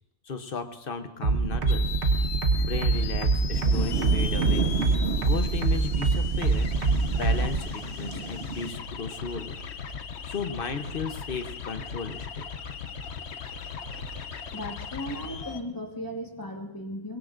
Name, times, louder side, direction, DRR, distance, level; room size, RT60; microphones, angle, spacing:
voice 1, 0.2-1.9 2.6-6.7 7.1-9.6 10.2-12.5, left 5 dB, 55° left, 7 dB, 1.1 m, -35 dB
sound 1, 1.2-7.6, right 4 dB, 90° right, 1.4 m, -24 dB
sound 2, 1.7-15.6, left 6 dB, 80° left, 1.1 m, -38 dB
sound 3, 3.5-8.7, right 5 dB, 75° right, 1.4 m, -33 dB
voice 2, 14.5-17.2, equal, 20° left, 2 dB, 1.6 m, -36 dB
23.0 x 20.0 x 2.6 m, 0.97 s
omnidirectional pair, 1.1 m